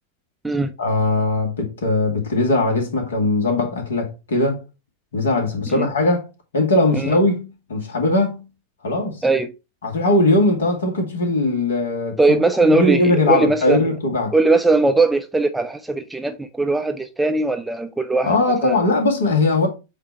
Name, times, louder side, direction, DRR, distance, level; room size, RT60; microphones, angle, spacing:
voice 1, 0.8-4.6 5.1-6.2 6.5-8.4 8.8-9.2 9.8-12.2 12.7-14.3 18.2-19.7, left 2 dB, 65° left, 2.2 m, -20 dB
voice 2, 12.2-13.8 14.3-18.3 18.6-18.8, right 2 dB, 5° right, 0.6 m, -19 dB
8.3 x 2.9 x 4.6 m
figure-of-eight pair, 90°, 0 cm